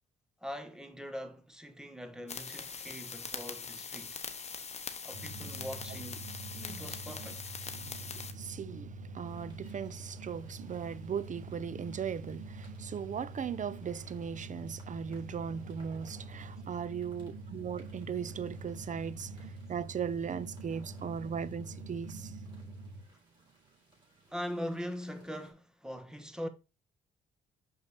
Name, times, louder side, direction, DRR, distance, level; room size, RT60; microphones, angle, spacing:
voice 1, 0.4-4.2 5.0-6.3 6.5-7.4 24.3-26.5, equal, 5° right, 1.2 m, -42 dB
sound 1, 2.3-8.3, left 5 dB, 35° left, 1.1 m, -42 dB
sound 2, 5.1-23.0, right 2 dB, 65° right, 1.6 m, -45 dB
voice 2, 7.8-22.6, right 7 dB, 40° right, 0.6 m, -38 dB
sound 3, 9.2-25.5, right 1 dB, 25° right, 4.4 m, -63 dB
6.6 x 5.2 x 4.1 m
cardioid pair, 90°, 20 cm